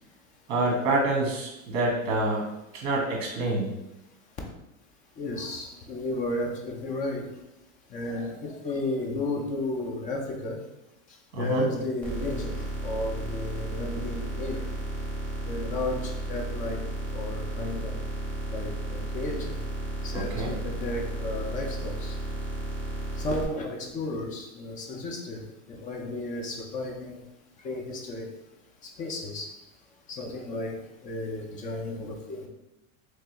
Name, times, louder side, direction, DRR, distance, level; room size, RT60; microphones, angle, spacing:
voice 1, 0.5-2.5 2.7-3.7 11.3-11.7 20.1-20.5, right 2 dB, 45° right, -2 dB, 1.4 m, -27 dB
voice 2, 5.2-7.2 7.9-10.6 11.3-14.7 15.4-16.8 17.1-18.0 18.5-19.6 20.0-22.2 23.2-25.4 25.7-27.2 27.6-28.3 29.0-29.5 30.1-30.8 31.0-32.5, left 2 dB, 20° left, 1 dB, 0.5 m, -33 dB
sound 1, 12.0-23.4, right 1 dB, 5° left, 0.9 m, -33 dB
3.3 x 3.2 x 3.0 m, 0.90 s
supercardioid pair, 135°, 41 cm